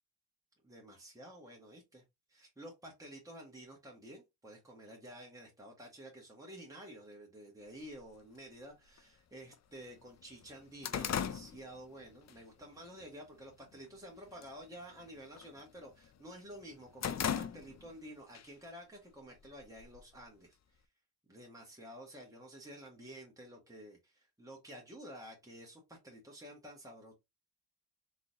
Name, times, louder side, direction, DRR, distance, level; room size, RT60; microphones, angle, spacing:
voice 1, 0.6-2.0 2.3-20.6 21.3-27.1, equal, 10° right, 1.5 m, -51 dB
sound 1, 8.0-8.1 9.0-9.1 9.5-9.6 10.0-12.4 12.8-13.1 13.5-14.0 14.3-14.6 14.9-16.1 16.5-18.0 18.3-18.5 19.4-20.2, left 8 dB, 40° left, 0.5 m, -38 dB
3.7 x 3.2 x 2.6 m
supercardioid pair, 55°, 44 cm